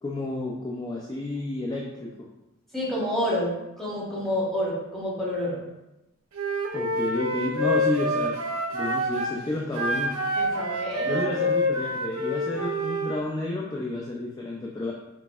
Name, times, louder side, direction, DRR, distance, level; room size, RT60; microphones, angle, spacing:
voice 1, 0.0-2.1 6.7-8.4 8.7-10.1 11.1-14.9, left 2 dB, 20° left, -2 dB, 0.4 m, -31 dB
voice 2, 2.7-5.6 10.4-11.3, left 1 dB, ahead, -8 dB, 1.2 m, -29 dB
Wind instrument woodwind instrument, 6.3-9.3 9.7-13.2, equal, 80° right, 0.8 m, -27 dB
4.4 x 4.0 x 2.4 m, 0.94 s
head